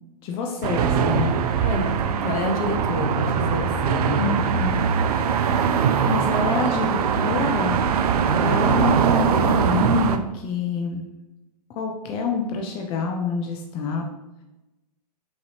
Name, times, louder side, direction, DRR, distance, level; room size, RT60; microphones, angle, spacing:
voice 1, 0.2-1.3 4.2-4.8 6.1-7.8 8.1-11.0 11.8-14.0, left 5 dB, 25° left, 2 dB, 0.4 m, -27 dB
sound 1, 0.6-10.2, right 6 dB, 65° right, 0.4 m, -21 dB
voice 2, 1.6-1.9 2.2-4.3, left 2 dB, 60° left, 3 dB, 0.9 m, -28 dB
5.7 x 2.7 x 2.9 m, 0.98 s
hypercardioid pair, 125°, 21 cm